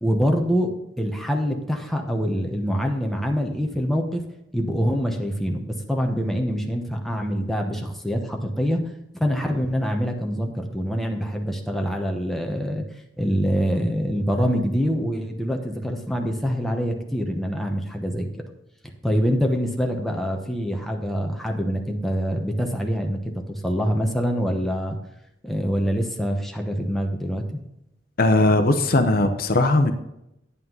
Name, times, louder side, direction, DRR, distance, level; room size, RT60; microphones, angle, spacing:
voice 1, 0.0-0.7 1.0-4.2 4.5-5.6 5.9-8.8 9.1-12.8 13.2-18.3 19.0-25.0 25.4-27.6, equal, ahead, 1 dB, 1.0 m, -25 dB
voice 2, 28.2-29.9, left 2 dB, 55° left, 7 dB, 0.8 m, -19 dB
9.3 x 8.6 x 3.9 m, 0.82 s
head